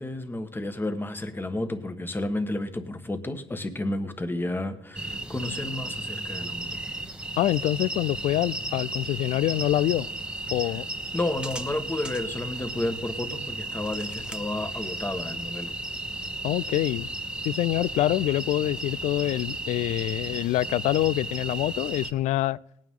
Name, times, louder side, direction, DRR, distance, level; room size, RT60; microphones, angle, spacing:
voice 1, 0.0-6.8 11.1-15.7, left 2 dB, 15° left, 1.3 m, -31 dB
sound 1, 4.9-22.1, right 2 dB, 5° right, 1.0 m, -34 dB
voice 2, 7.4-10.1 10.5-10.9 16.4-17.1 17.4-22.6, left 15 dB, 75° left, 0.4 m, -25 dB
18.5 x 9.0 x 3.7 m
supercardioid pair, 75°, 12 cm